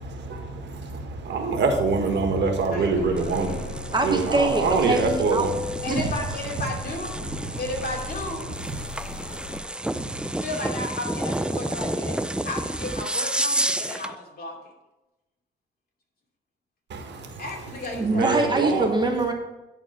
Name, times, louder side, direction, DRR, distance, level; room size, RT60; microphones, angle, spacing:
voice 1, 0.0-5.5 8.8-8.9 16.9-17.4 18.1-18.9, right 4 dB, 65° right, 4 dB, 1.7 m, -25 dB
voice 2, 2.7-3.6 3.9-4.0 5.8-7.2 7.6-8.5 10.4-12.2 12.4-14.5 17.4-18.8, left 2 dB, 50° left, -1 dB, 2.8 m, -34 dB
sound 1, 2.9-9.6, left 5 dB, 65° left, 1.8 m, -37 dB
sound 2, 3.2-14.1, right 1 dB, 5° right, 0.4 m, -31 dB
voice 3, 3.9-5.5 5.9-6.1 17.9-19.3, right 2 dB, 20° right, 3 dB, 1.1 m, -23 dB
11.0 x 4.3 x 5.8 m, 1.0 s
cardioid pair, 90°, 20 cm